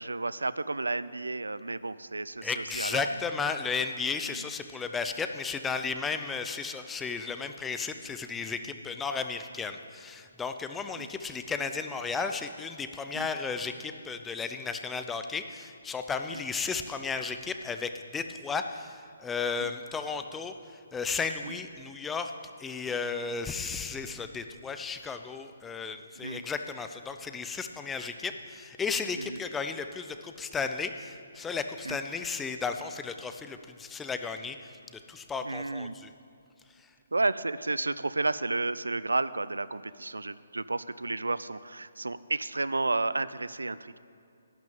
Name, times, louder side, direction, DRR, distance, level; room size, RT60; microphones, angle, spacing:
voice 1, 0.0-3.0 4.3-4.5 11.0-11.1 13.1-13.3 16.3-16.4 19.6-19.7 21.4-21.6 26.2-26.4 29.1-29.4 31.8-32.0 35.4-36.0 37.1-44.0, right 2 dB, 90° right, 16 dB, 0.4 m, -32 dB
voice 2, 2.4-20.5 20.9-22.3 22.6-36.1, left 5 dB, 10° left, 7 dB, 0.6 m, -34 dB
11.5 x 6.0 x 9.0 m, 2.6 s
figure-of-eight pair, 145°, 0 cm